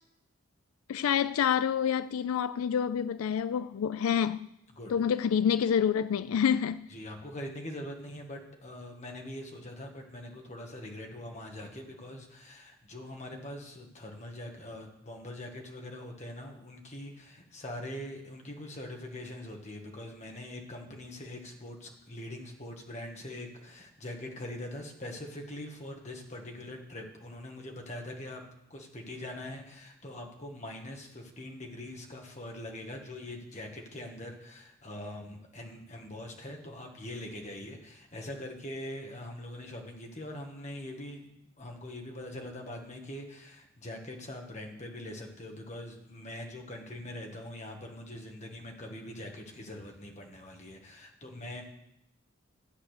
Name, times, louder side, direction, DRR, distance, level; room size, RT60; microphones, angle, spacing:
voice 1, 0.9-4.5 4.9-6.9, left 8 dB, 90° left, 0.4 m, -27 dB
voice 2, 6.9-28.4 28.7-41.3 41.6-51.6, left 1 dB, 35° left, 1.8 m, -43 dB
13.5 x 8.6 x 6.7 m
head